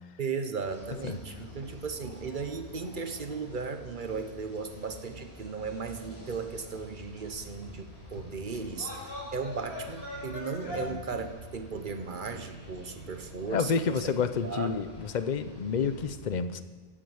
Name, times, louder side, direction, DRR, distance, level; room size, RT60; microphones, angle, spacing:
voice 1, 0.2-14.1 14.4-14.7, right 5 dB, 55° right, 8 dB, 1.2 m, -36 dB
sound 1, 0.6-16.1, left 1 dB, 80° left, 4.6 m, -45 dB
voice 2, 13.5-16.6, left 5 dB, 50° left, 11 dB, 0.8 m, -29 dB
15.5 x 8.8 x 7.1 m, 1.4 s
omnidirectional pair, 1.0 m